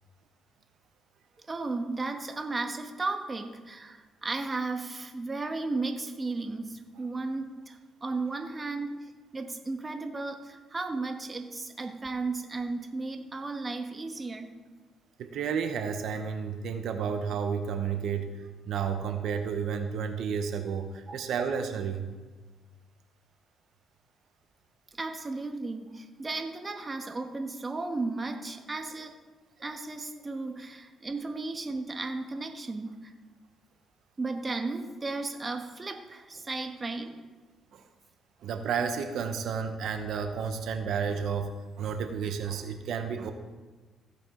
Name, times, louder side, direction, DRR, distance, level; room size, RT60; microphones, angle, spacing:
voice 1, 1.5-8.9 9.3-14.5 24.9-29.1 29.6-33.1 34.2-37.2, right 3 dB, 25° right, 6 dB, 1.2 m, -34 dB
voice 2, 15.2-22.1 37.7-37.9 38.4-43.3, right 6 dB, 75° right, 7 dB, 0.9 m, -31 dB
16.0 x 8.3 x 3.8 m, 1.3 s
cardioid pair, 90°, 0 cm